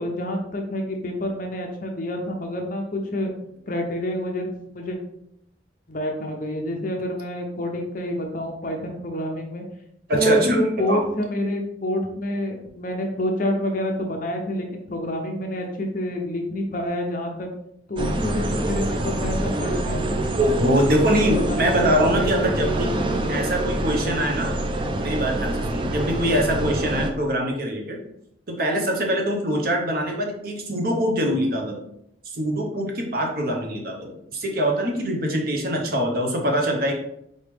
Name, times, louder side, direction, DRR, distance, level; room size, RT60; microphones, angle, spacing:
voice 1, 0.0-3.3 3.7-5.0 5.9-9.6 10.1-17.5 17.9-20.0 21.1-23.4, equal, 45° left, 2 dB, 0.7 m, -28 dB
voice 2, 10.1-10.6 10.9-11.0 20.4-22.9 23.3-24.6 25.0-28.0 28.5-31.8 32.3-36.9, equal, 55° right, 1 dB, 0.8 m, -23 dB
sound 1, 18.0-27.1, right 1 dB, 25° right, 0.4 m, -26 dB
4.0 x 3.2 x 3.4 m, 0.76 s
head